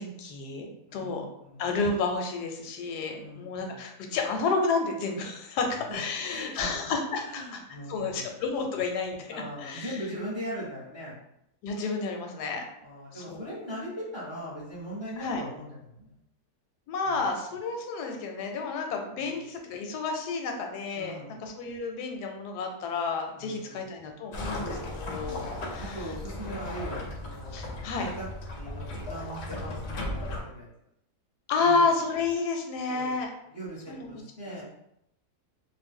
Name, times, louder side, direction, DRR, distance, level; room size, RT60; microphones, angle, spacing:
voice 1, 0.0-1.3 1.6-7.6 7.9-9.9 11.6-12.6 13.1-13.5 15.2-15.4 16.9-26.1 27.5-28.1 31.5-33.3 33.9-34.1 34.4-34.6, left 4 dB, 85° left, 3 dB, 1.1 m, -31 dB
voice 2, 0.9-1.6 3.1-3.8 5.7-6.9 7.2-8.2 9.3-11.1 12.8-16.1 17.0-17.2 19.1-19.3 20.9-21.4 23.4-23.9 25.2-25.5 25.8-28.3 28.5-30.7 31.6-31.8 32.9-33.1 33.5-34.6, equal, 25° right, -8 dB, 0.6 m, -40 dB
sound 1, 24.3-30.4, left 1 dB, 60° left, 0.7 m, -36 dB
2.6 x 2.1 x 3.5 m, 0.79 s
omnidirectional pair, 1.7 m